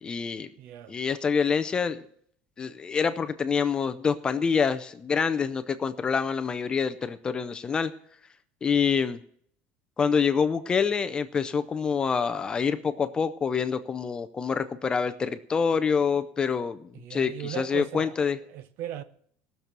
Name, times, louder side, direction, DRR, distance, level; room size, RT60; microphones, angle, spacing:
voice 1, 0.0-0.5 0.9-2.1 2.6-7.9 8.6-9.2 10.0-18.4, left 6 dB, 15° left, 0.5 m, -26 dB
voice 2, 0.6-0.9 16.9-18.1 18.5-19.0, right 11 dB, 45° right, 0.7 m, -37 dB
18.0 x 6.8 x 6.0 m
cardioid pair, 180°, 5 cm